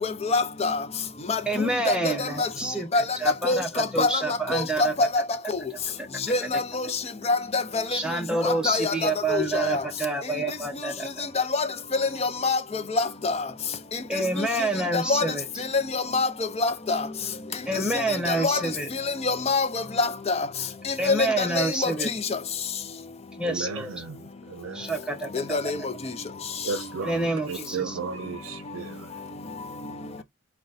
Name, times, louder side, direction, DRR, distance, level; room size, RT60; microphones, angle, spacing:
voice 1, 0.3-0.7 1.3-1.4 2.4-2.5 2.9-3.0 3.5-4.1 4.5-4.6 6.3-6.4 8.7-8.9 9.3-9.7 11.5-11.6 12.4-12.6 12.9-13.0 15.1-15.2 16.1-16.3 16.6-17.0 18.4-18.6 19.3-19.7 20.0-20.3 21.4-21.5 21.8-21.9 25.5-25.8, left 3 dB, 30° left, 0.5 m, -23 dB
voice 2, 1.5-5.2 5.7-6.6 7.9-11.3 14.1-15.5 17.7-18.9 21.0-22.1 23.4-24.0 24.7-25.7 27.0-28.0, right 2 dB, 5° right, 0.8 m, -28 dB
voice 3, 23.4-24.9 26.6-29.1, right 5 dB, 80° right, 0.5 m, -34 dB
3.9 x 2.2 x 3.9 m
head